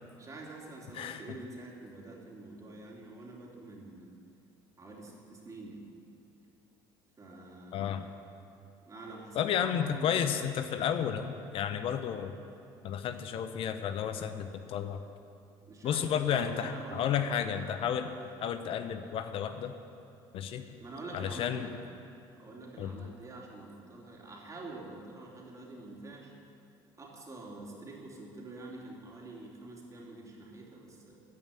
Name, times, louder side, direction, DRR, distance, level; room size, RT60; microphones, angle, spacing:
voice 1, 0.2-4.1 4.8-5.8 7.2-8.0 8.8-10.1 15.6-17.4 18.0-18.2 20.8-21.8 22.3-26.3 27.0-31.2, right 2 dB, 30° right, -2 dB, 3.0 m, -47 dB
voice 2, 7.7-8.0 9.3-12.3 12.8-15.0 15.8-18.1 18.4-19.8 20.3-20.6 21.1-21.7 22.8-23.0, left 8 dB, 60° left, 9 dB, 0.7 m, -32 dB
14.0 x 5.5 x 9.2 m, 2.6 s
supercardioid pair, 75°, 11 cm